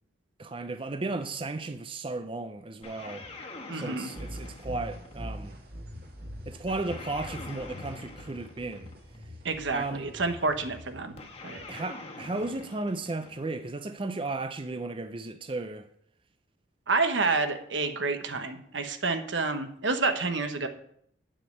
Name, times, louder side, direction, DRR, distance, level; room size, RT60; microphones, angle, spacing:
voice 1, 0.4-3.2 3.7-5.6 6.5-8.9 9.7-10.1 11.7-15.9, right 2 dB, 30° right, 0.5 m, -34 dB
sound 1, 2.8-5.4 6.7-9.2 11.2-13.7, left 2 dB, 35° left, 1.5 m, -45 dB
voice 2, 3.7-4.1 9.4-11.2 11.4-11.6 16.9-20.7, right 3 dB, 80° right, 1.1 m, -29 dB
sound 2, 4.2-11.6, equal, 55° right, 2.2 m, -43 dB
8.7 x 5.3 x 7.9 m
head